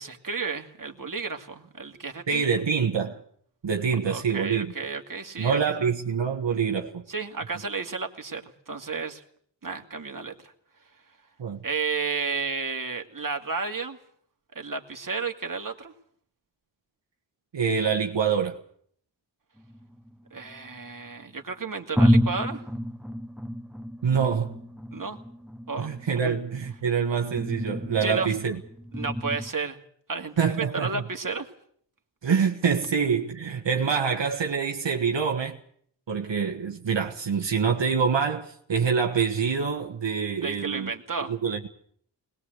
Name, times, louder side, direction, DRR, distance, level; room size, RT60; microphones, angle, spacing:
voice 1, 0.0-2.4 4.1-5.6 7.1-9.2 9.6-10.5 11.6-14.0 14.6-15.9 20.3-22.6 24.9-25.2 25.7-25.9 26.2-26.3 28.0-28.3 28.9-29.8 30.1-31.5 40.4-41.3, right 4 dB, 45° right, 2.4 m, -32 dB
voice 2, 2.3-3.2 3.6-4.7 5.4-7.0 11.4-11.6 17.5-18.6 24.0-24.6 25.8-28.6 30.4-31.0 32.2-35.6 36.1-40.9 41.3-41.7, right 6 dB, 75° right, 1.6 m, -26 dB
sound 1, 19.6-20.9 21.5-21.6 22.0-29.5, equal, ahead, 0.9 m, -29 dB
22.0 x 20.0 x 8.0 m
wide cardioid pair, 70°, 44 cm